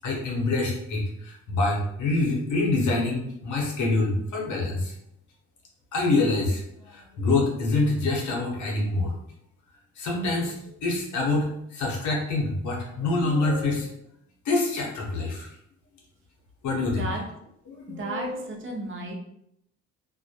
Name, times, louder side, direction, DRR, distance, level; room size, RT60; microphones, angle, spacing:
voice 1, 0.0-4.9 5.9-9.1 10.0-10.5 10.8-13.9 14.4-15.5 16.6-17.1 17.7-18.4, left 2 dB, 75° left, -2 dB, 0.9 m, -26 dB
voice 2, 17.9-19.1, right 2 dB, 40° right, 0 dB, 0.6 m, -33 dB
2.2 x 2.1 x 2.8 m, 0.77 s
cardioid pair, 90°, 30 cm